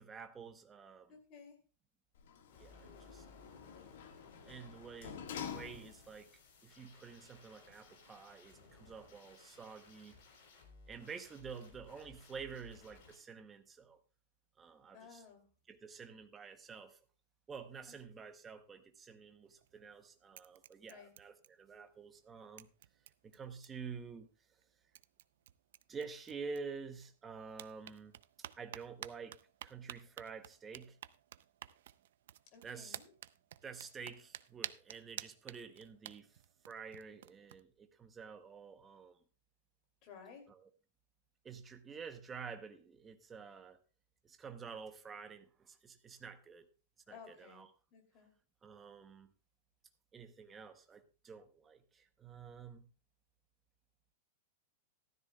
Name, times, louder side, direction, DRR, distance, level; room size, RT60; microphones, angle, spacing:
voice 1, 0.0-1.2 2.6-3.2 4.4-6.3 6.6-10.1 10.9-14.0 14.6-15.2 15.7-17.0 17.5-22.7 23.2-24.3 25.9-28.1 28.6-31.0 32.6-33.0 33.6-36.4 36.7-39.2 40.5-40.6 41.4-43.8 44.2-46.7 47.1-47.7 48.6-49.3 50.1-52.9, right 5 dB, 10° right, 0.7 m, -49 dB
voice 2, 1.1-1.6 12.4-12.6 14.9-15.4 17.9-18.2 20.9-21.1 32.5-33.1 40.0-40.5 47.1-47.6 47.9-48.3, left 6 dB, 30° left, 2.7 m, -56 dB
Sliding door, 2.2-6.3 6.7-6.8, left 8 dB, 60° left, 1.5 m, -48 dB
sound 1, 2.5-13.2, left 3 dB, 45° left, 3.5 m, -61 dB
sound 2, 19.5-20.0 20.3-21.9 22.2-22.3 22.6-24.0 24.6-24.7 25.0-27.1 27.5-37.6, right 12 dB, 60° right, 0.4 m, -52 dB
14.5 x 12.5 x 2.2 m
supercardioid pair, 180°, 0 cm